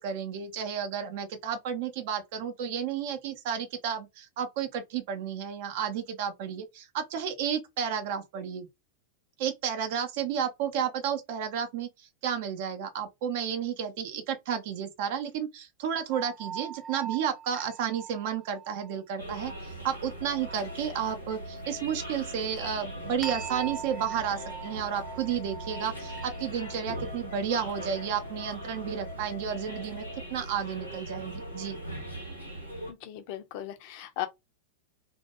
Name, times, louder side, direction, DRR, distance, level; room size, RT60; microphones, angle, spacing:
voice 1, 0.0-8.7 9.4-31.8, right 8 dB, 50° right, 0.5 m, -32 dB
sound 1, 16.1-19.0 23.2-26.8, right 6 dB, ahead, 0.6 m, -41 dB
sound 2, 19.2-32.9, right 1 dB, 85° right, 0.9 m, -40 dB
sound 3, 20.2-30.2, left 4 dB, 65° left, 0.8 m, -47 dB
voice 2, 32.9-34.3, left 12 dB, 45° left, 0.5 m, -37 dB
2.2 x 2.1 x 2.8 m
figure-of-eight pair, 90°, 0 cm